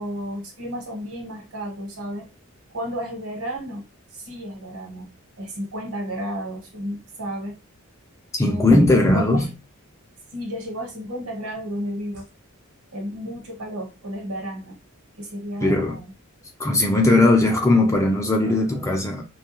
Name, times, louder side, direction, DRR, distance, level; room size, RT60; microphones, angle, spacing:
voice 1, 0.0-2.3 2.7-3.8 4.1-5.1 5.4-7.5 8.4-9.5 10.3-12.2 12.9-14.8 15.2-16.1, equal, 75° right, 1.1 m, -32 dB
voice 2, 8.3-9.5 15.6-16.0 16.6-19.2, left 2 dB, 15° left, 0.3 m, -18 dB
2.3 x 2.2 x 2.9 m
head